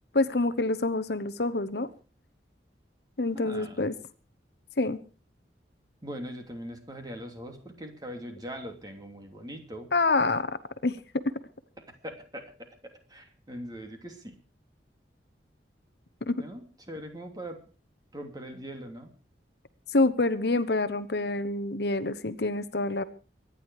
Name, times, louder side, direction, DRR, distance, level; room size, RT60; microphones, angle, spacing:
voice 1, 0.1-1.9 3.2-3.9 4.8-5.0 9.9-10.5 10.8-11.0 16.3-16.4 19.9-23.0, left 2 dB, 65° left, 13 dB, 1.0 m, -26 dB
voice 2, 3.3-3.9 6.0-9.9 11.8-14.4 16.4-17.6 18.1-19.1, equal, 20° right, 4 dB, 3.0 m, -41 dB
24.0 x 10.5 x 4.8 m, 0.37 s
head